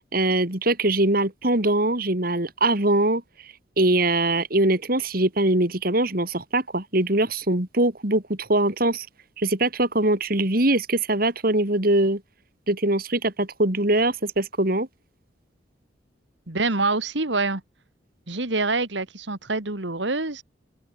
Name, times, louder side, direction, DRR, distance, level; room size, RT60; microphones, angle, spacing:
voice 1, 0.1-9.1 9.4-12.2 12.7-14.9, right 2 dB, 50° right, 3.2 m, -22 dB
voice 2, 16.5-17.6 18.3-20.4, right 3 dB, 70° right, 2.6 m, -26 dB
head